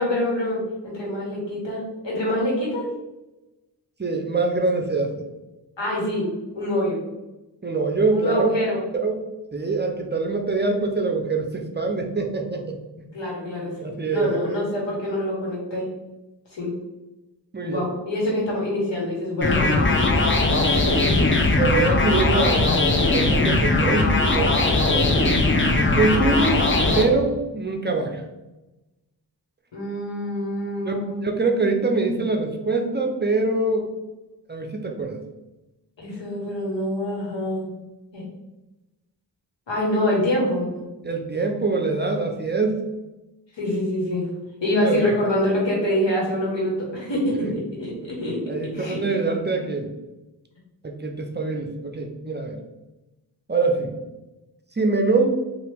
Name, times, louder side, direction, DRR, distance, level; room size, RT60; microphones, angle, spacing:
voice 1, 0.0-2.9 5.8-6.3 6.5-7.0 8.1-8.8 13.1-13.7 14.1-15.9 16.5-16.7 17.6-20.2 20.6-21.2 24.8-24.9 29.7-31.3 36.0-37.7 38.1-38.2 39.7-40.9 43.6-44.2 44.6-48.4 48.7-49.2, left 1 dB, 75° left, -4 dB, 1.3 m, -25 dB
voice 2, 4.0-5.2 7.6-8.5 9.0-9.2 9.5-12.8 13.8-14.3 17.5-17.9 21.6-24.6 24.9-25.2 25.9-26.6 26.9-28.2 30.8-30.9 31.2-33.9 34.5-35.2 41.0-42.8 44.8-45.0 48.5-49.9 50.8-52.6 53.5-53.9 54.7-55.3, right 3 dB, 25° right, 3 dB, 0.5 m, -24 dB
sound 1, 19.4-27.0, left 2 dB, 30° left, 0.6 m, -19 dB
2.8 x 2.4 x 3.4 m, 1.0 s
cardioid pair, 40°, 44 cm